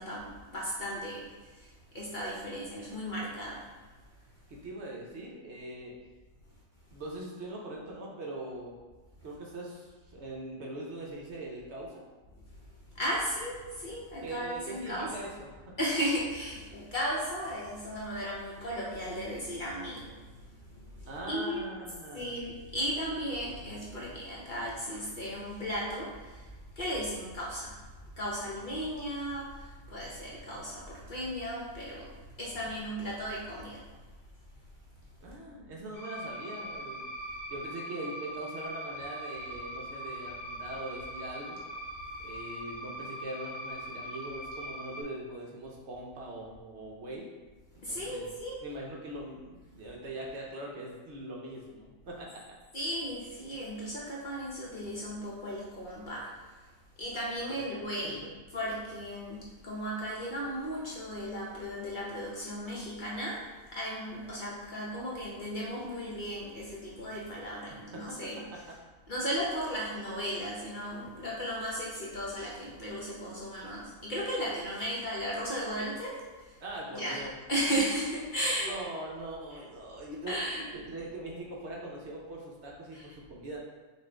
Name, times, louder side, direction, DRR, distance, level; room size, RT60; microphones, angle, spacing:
voice 1, 0.0-3.7 12.4-15.1 15.8-21.6 22.1-33.8 47.8-48.6 52.7-56.7 57.0-58.2 58.5-63.4 63.7-68.4 69.1-76.6 76.9-78.8 80.3-80.6 82.9-83.1, equal, 45° left, -5 dB, 0.8 m, -36 dB
voice 2, 4.5-5.9 6.9-8.7 9.2-12.0 14.2-15.5 21.1-22.4 35.2-37.1 37.5-41.6 42.2-47.3 47.9-48.3 48.6-52.6 57.5-57.6 58.0-58.1 67.7-68.2 76.6-77.3 78.7-80.4 80.7-83.6, right 1 dB, 60° right, -2 dB, 1.0 m, -41 dB
sound 1, 35.9-45.0, equal, ahead, 0.9 m, -41 dB
5.7 x 2.5 x 3.4 m, 1.3 s
omnidirectional pair, 1.4 m